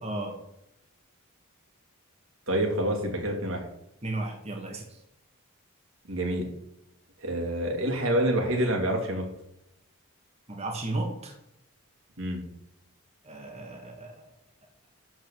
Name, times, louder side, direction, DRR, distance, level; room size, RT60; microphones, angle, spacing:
voice 1, 0.0-0.4 4.0-5.0 10.5-11.3 13.2-14.3, right 2 dB, 30° right, 1 dB, 1.5 m, -34 dB
voice 2, 2.5-3.6 6.1-6.4 7.2-9.2 12.2-12.4, right 1 dB, 75° right, 2 dB, 2.4 m, -27 dB
12.0 x 4.1 x 7.0 m, 0.82 s
head